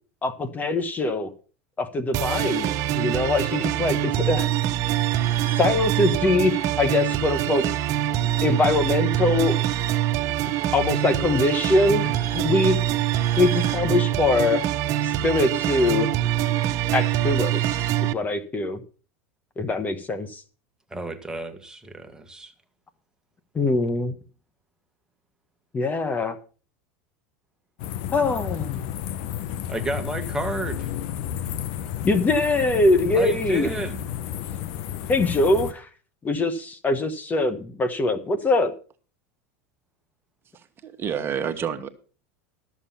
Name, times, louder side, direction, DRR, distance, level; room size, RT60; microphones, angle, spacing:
voice 1, 0.2-1.3 1.8-4.5 5.6-7.6 8.4-9.6 10.7-12.8 13.4-14.6 15.0-16.1 16.9-18.8 19.6-20.4 23.5-24.1 25.7-26.4 28.1-28.9 32.0-33.7 35.1-35.9 36.2-38.7, left 2 dB, 20° left, 1.2 m, -23 dB
sound 1, 2.1-18.1, right 12 dB, 50° right, 0.8 m, -24 dB
voice 2, 20.9-22.5 29.7-30.9 33.1-34.0, right 2 dB, 10° right, 1.6 m, -31 dB
sound 2, 27.8-35.7, left 10 dB, 65° left, 0.9 m, -32 dB
voice 3, 40.5-41.9, right 7 dB, 30° right, 1.3 m, -29 dB
13.0 x 7.2 x 5.7 m
supercardioid pair, 110°, 7 cm